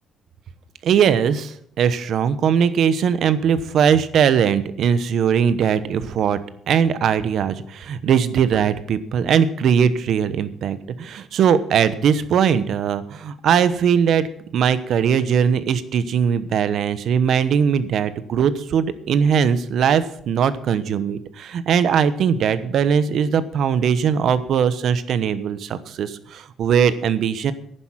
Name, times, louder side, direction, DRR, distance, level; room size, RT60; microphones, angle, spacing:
voice 1, 0.8-6.4 6.7-14.3 14.5-27.5, right 7 dB, 50° right, 14 dB, 1.0 m, -20 dB
11.0 x 10.0 x 7.4 m, 0.66 s
cardioid pair, 165°, 0 cm